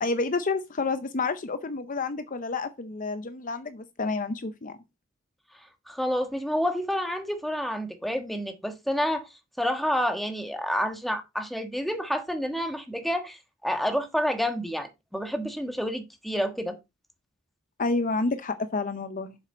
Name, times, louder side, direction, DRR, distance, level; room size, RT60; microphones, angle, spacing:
voice 1, 0.0-4.8 17.8-19.4, left 3 dB, 40° left, 0.7 m, -29 dB
voice 2, 5.9-9.3 9.6-16.7, equal, ahead, 1.3 m, -29 dB
7.5 x 6.6 x 4.3 m
head